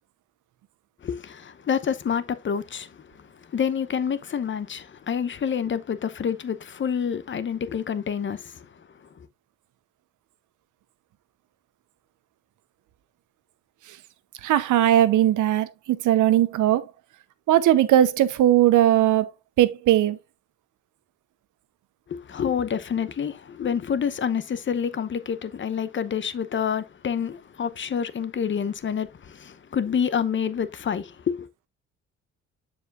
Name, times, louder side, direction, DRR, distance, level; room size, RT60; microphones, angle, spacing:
voice 1, 1.0-8.7 22.1-31.5, left 7 dB, 40° left, 0.9 m, -28 dB
voice 2, 14.4-16.8 17.5-19.3 19.6-20.2, right 12 dB, 80° right, 0.9 m, -19 dB
7.1 x 7.1 x 2.5 m
cardioid pair, 90°, 30 cm